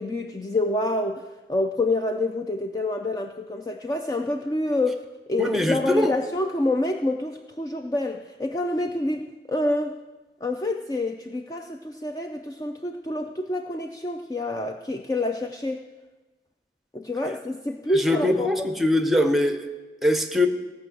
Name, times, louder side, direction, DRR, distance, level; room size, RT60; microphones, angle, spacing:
voice 1, 0.0-10.0 10.4-15.8 16.9-18.7, left 2 dB, 20° left, 5 dB, 0.4 m, -27 dB
voice 2, 5.4-6.1 17.9-19.6 20.0-20.5, left 1 dB, ahead, 6 dB, 0.8 m, -22 dB
16.5 x 5.8 x 7.7 m, 1.2 s
head